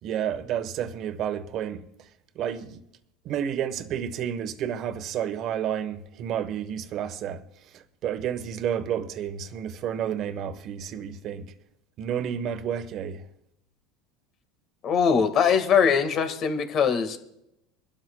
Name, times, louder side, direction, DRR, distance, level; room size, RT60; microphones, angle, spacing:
voice 1, 0.0-1.9 2.3-2.8 3.2-7.4 7.7-11.5 12.0-13.3, right 9 dB, 50° right, 1.2 m, -30 dB
voice 2, 14.8-17.2, left 6 dB, 45° left, 1.8 m, -22 dB
25.5 x 12.5 x 2.3 m
supercardioid pair, 115°, 0 cm